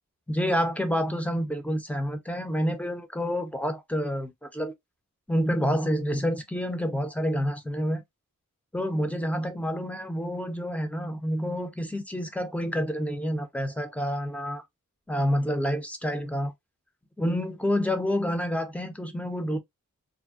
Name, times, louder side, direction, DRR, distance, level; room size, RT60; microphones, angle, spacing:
voice 1, 0.3-4.7 5.3-8.0 8.7-14.6 15.1-16.5 17.2-19.6, equal, 5° left, 0.7 m, -28 dB
2.6 x 2.2 x 2.3 m
cardioid pair, 50°, 31 cm